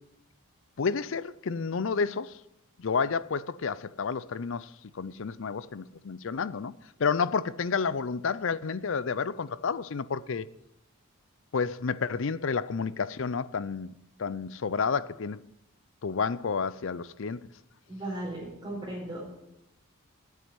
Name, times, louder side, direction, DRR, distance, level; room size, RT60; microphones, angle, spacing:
voice 1, 0.8-2.3 2.8-4.7 4.9-6.7 7.0-10.5 11.5-13.9 14.2-15.4 16.0-17.4, left 5 dB, 60° left, 0.5 m, -30 dB
voice 2, 17.9-19.2, right 1 dB, 20° right, 4.3 m, -36 dB
9.2 x 8.4 x 9.5 m
head